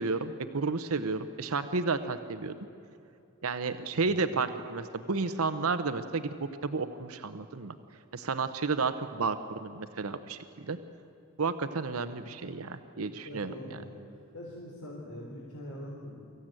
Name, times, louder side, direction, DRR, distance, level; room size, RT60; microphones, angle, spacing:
voice 1, 0.0-2.5 3.4-7.7 8.1-10.4 10.7-10.8 11.4-13.8, right 4 dB, 75° right, 10 dB, 0.8 m, -32 dB
voice 2, 4.0-4.4 13.2-14.0 14.3-16.2, left 1 dB, 80° left, -3 dB, 3.4 m, -43 dB
24.5 x 15.0 x 9.1 m, 2.6 s
head